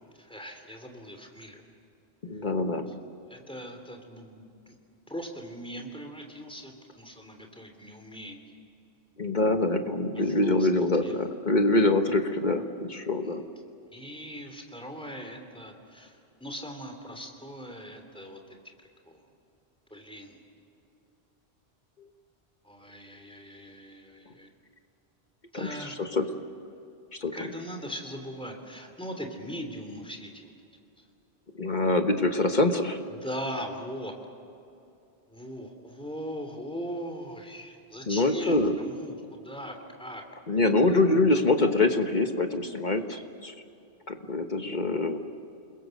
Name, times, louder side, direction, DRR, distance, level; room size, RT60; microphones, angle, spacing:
voice 1, 0.0-1.7 3.3-4.8 5.1-8.4 10.3-10.7 11.0-11.3 13.2-13.5 13.9-18.6 19.0-19.3 19.9-20.4 22.6-24.5 25.5-25.9 27.3-30.5 31.0-31.1 33.1-34.1 35.3-40.2, equal, 5° left, 3 dB, 3.1 m, -40 dB
voice 2, 2.2-2.9 9.2-12.6 12.9-13.4 25.5-26.2 27.1-27.3 31.5-33.0 38.1-38.7 40.5-43.5 44.1-45.2, left 2 dB, 45° left, 6 dB, 1.5 m, -25 dB
29.0 x 22.0 x 6.6 m, 2.7 s
omnidirectional pair, 1.1 m